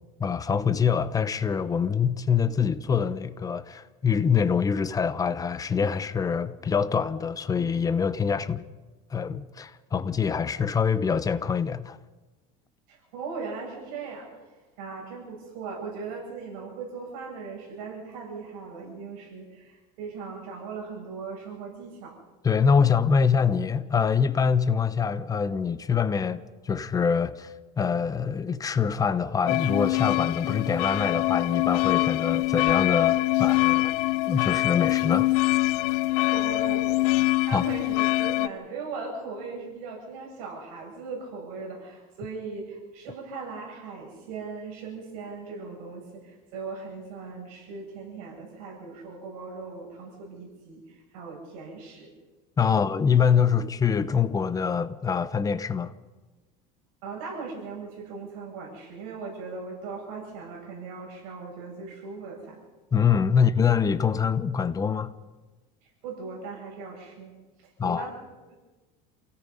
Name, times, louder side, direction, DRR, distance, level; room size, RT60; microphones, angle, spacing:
voice 1, 0.2-8.7 9.1-12.0 22.4-33.9 34.3-35.3 37.5-37.6 52.6-55.9 62.9-65.1 67.8-68.1, left 6 dB, 20° left, 0.8 m, -25 dB
voice 2, 12.9-14.3 14.8-22.2 36.3-36.8 37.5-52.1 52.7-52.9 57.0-62.6 66.0-67.3 67.8-68.1 68.5-68.6, right 4 dB, 75° right, 7.8 m, -39 dB
sound 1, 29.5-38.5, left 19 dB, 85° left, 0.6 m, -24 dB
28.5 x 17.5 x 5.5 m
cardioid pair, 145°, 19 cm